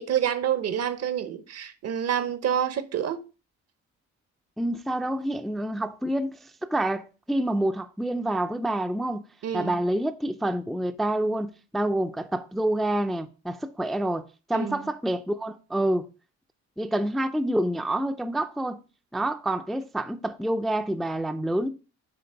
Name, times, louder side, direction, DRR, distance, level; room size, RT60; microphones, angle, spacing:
voice 1, 0.0-3.2 9.4-9.8 14.5-14.8, right 9 dB, 55° right, 0.8 m, -28 dB
voice 2, 4.6-9.2 9.5-16.1 16.8-18.8 19.1-21.7, right 1 dB, ahead, 0.4 m, -27 dB
7.8 x 3.2 x 4.5 m
cardioid pair, 90°, 30 cm